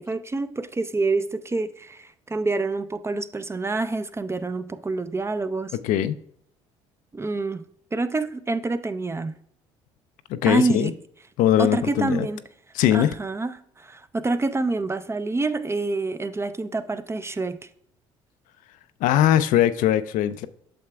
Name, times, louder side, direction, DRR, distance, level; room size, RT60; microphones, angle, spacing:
voice 1, 0.0-5.8 7.1-7.6 7.9-9.3 10.4-10.9 11.6-12.4 12.9-17.6, right 3 dB, 20° right, 0.4 m, -27 dB
voice 2, 5.8-6.2 10.3-10.9 11.4-12.3 12.7-13.1 19.0-20.5, left 12 dB, 65° left, 0.4 m, -20 dB
8.6 x 6.6 x 2.3 m
hypercardioid pair, 55°, 15 cm